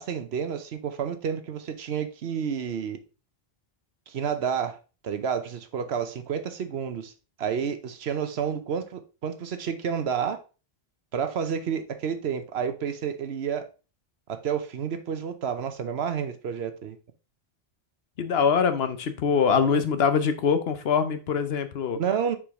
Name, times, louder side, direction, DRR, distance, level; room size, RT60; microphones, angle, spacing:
voice 1, 0.0-3.0 4.1-4.8 5.0-7.1 7.4-10.4 11.1-13.7 14.3-17.0 19.5-19.8 21.9-22.4, right 7 dB, 80° right, 1.1 m, -30 dB
voice 2, 18.2-22.0, left 6 dB, 75° left, 1.0 m, -23 dB
6.1 x 4.8 x 3.6 m
omnidirectional pair, 1.1 m